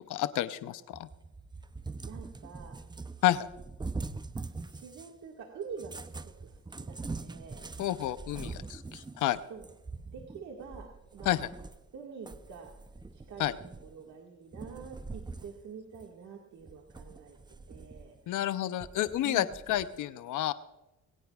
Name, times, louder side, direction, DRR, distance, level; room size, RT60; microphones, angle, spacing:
voice 1, 0.1-1.1 3.2-3.5 7.8-9.4 11.2-11.5 13.4-13.5 18.3-20.5, left 13 dB, 80° left, 13 dB, 0.7 m, -30 dB
Cat, 0.9-5.2 5.7-11.9 12.3-14.1 14.5-15.6 15.9-16.1 16.6-18.2 18.8-20.0, right 3 dB, 15° right, 0.6 m, -43 dB
voice 2, 2.0-2.8 4.7-6.0 6.2-7.7 9.5-9.7 10.1-11.5 11.9-12.7 13.1-13.5 13.8-18.4 19.2-19.5, right 6 dB, 70° right, 0 dB, 1.8 m, -46 dB
21.0 x 17.5 x 2.4 m, 1.0 s
cardioid pair, 90°, 30 cm